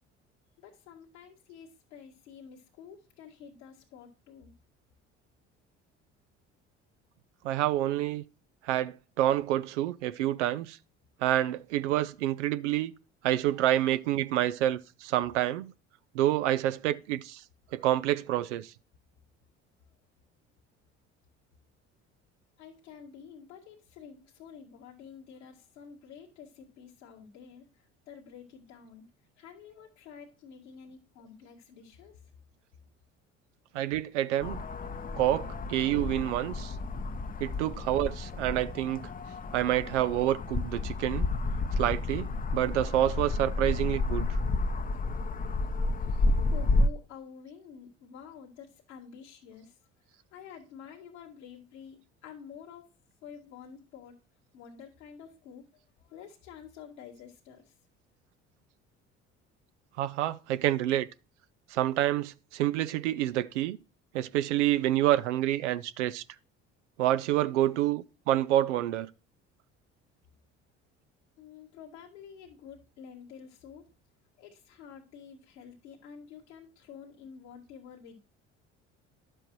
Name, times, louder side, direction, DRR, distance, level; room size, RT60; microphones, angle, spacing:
voice 1, 0.6-4.5 22.6-29.1 29.4-32.2 45.7-46.1 46.5-49.8 50.3-52.9 53.2-54.1 54.5-55.7 56.0-57.7 71.4-73.9 74.4-78.2, left 7 dB, 85° left, 2.1 m, -49 dB
voice 2, 7.4-8.2 8.6-10.8 11.2-12.9 13.2-15.7 16.1-17.4 17.7-18.7 33.7-34.6 35.2-36.7 37.4-39.1 39.5-41.3 41.8-44.3 60.0-61.1 61.7-63.8 64.1-66.2 67.0-69.1, right 13 dB, 85° right, 0.5 m, -28 dB
sound 1, 34.4-46.9, left 2 dB, 25° left, 0.7 m, -31 dB
10.5 x 7.6 x 3.1 m
hypercardioid pair, 60°, 35 cm